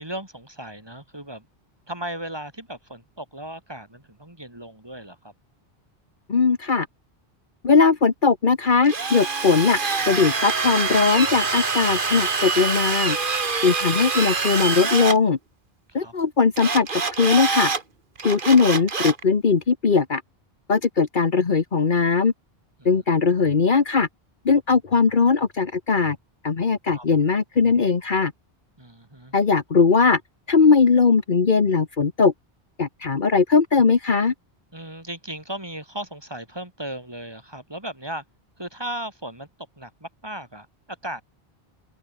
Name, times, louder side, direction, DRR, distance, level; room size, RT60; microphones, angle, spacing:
voice 1, 0.0-1.5 1.9-5.3 15.9-16.1 22.8-22.9 26.9-27.1 28.8-29.3 34.7-38.2 38.6-39.5 39.8-41.2, right 1 dB, 25° right, 3.1 m, -36 dB
voice 2, 6.3-6.9 7.6-9.8 10.1-13.2 13.6-15.4 15.9-17.7 18.2-20.2 20.7-22.3 22.8-24.1 24.4-26.2 26.4-28.3 29.3-30.2 30.5-32.3 32.8-34.3, left 5 dB, 55° left, 1.3 m, -19 dB
Drill, 8.8-15.2 16.6-17.8 18.2-19.2, right 4 dB, 55° right, 1.8 m, -25 dB
open air
omnidirectional pair, 1.0 m